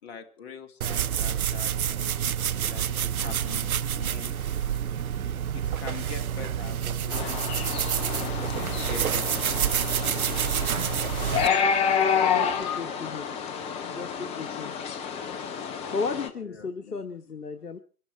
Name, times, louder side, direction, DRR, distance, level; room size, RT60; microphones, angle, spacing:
voice 1, 0.0-2.1 2.7-4.4 5.5-7.5 8.0-9.4 11.5-11.6 16.4-17.0, left 6 dB, 45° left, 5 dB, 2.7 m, -43 dB
sound 1, 0.8-11.5, right 9 dB, 70° right, 0.7 m, -28 dB
sound 2, 7.1-16.3, left 7 dB, 15° left, 1.0 m, -29 dB
voice 2, 12.3-13.3 14.0-14.7 15.6-17.8, left 4 dB, 90° left, 7 dB, 1.2 m, -35 dB
24.0 x 11.5 x 4.7 m, 0.40 s
figure-of-eight pair, 135°, 45 cm